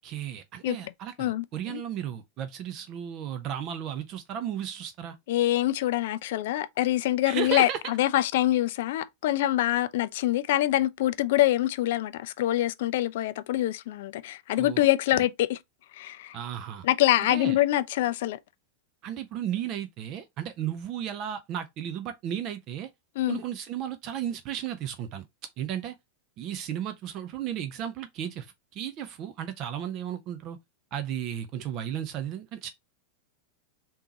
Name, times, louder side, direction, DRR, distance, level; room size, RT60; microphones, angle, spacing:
voice 1, 0.0-5.2 7.3-7.8 14.6-14.8 15.1-15.2 16.3-16.9 17.3-17.6 19.0-22.9 23.3-25.2 25.6-25.9 26.4-30.6 30.9-32.7, right 10 dB, 35° right, 0.5 m, -34 dB
voice 2, 1.2-1.8 5.3-15.6 15.9-16.4 16.8-18.4 23.2-23.4, left 14 dB, 55° left, 0.3 m, -25 dB
3.5 x 2.8 x 2.8 m
figure-of-eight pair, 90°, 0 cm